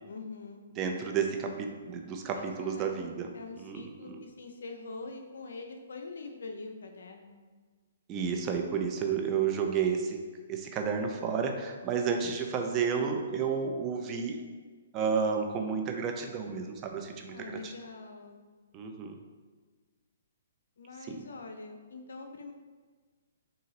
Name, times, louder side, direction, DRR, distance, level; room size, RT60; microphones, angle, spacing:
voice 1, 0.1-0.6 2.4-7.4 17.3-18.4 20.8-22.5, left 3 dB, 75° left, 4 dB, 0.6 m, -44 dB
voice 2, 0.8-3.3 3.6-4.2 8.1-10.2 10.5-14.4 14.9-17.7 18.7-19.2 21.1-21.2, right 6 dB, 25° right, 3 dB, 0.5 m, -31 dB
3.8 x 2.8 x 4.1 m, 1.4 s
hypercardioid pair, 135°, 0 cm